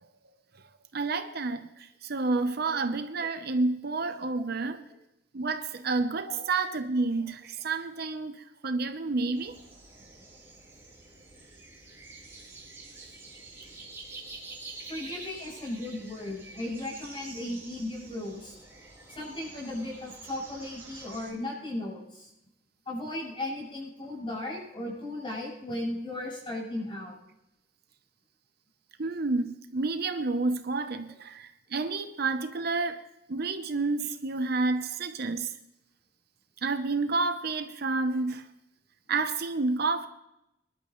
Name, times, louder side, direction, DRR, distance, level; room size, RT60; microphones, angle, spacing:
voice 1, 0.9-4.8 5.3-9.6 29.0-33.0 33.3-35.5 36.6-38.5 39.1-40.1, right 3 dB, 55° right, 0.9 m, -29 dB
sound 1, 9.4-21.3, right 3 dB, 15° right, 4.2 m, -47 dB
voice 2, 14.9-18.5 19.1-22.3 22.9-27.2, left 1 dB, 25° left, 7.4 m, -36 dB
24.5 x 12.0 x 3.2 m
head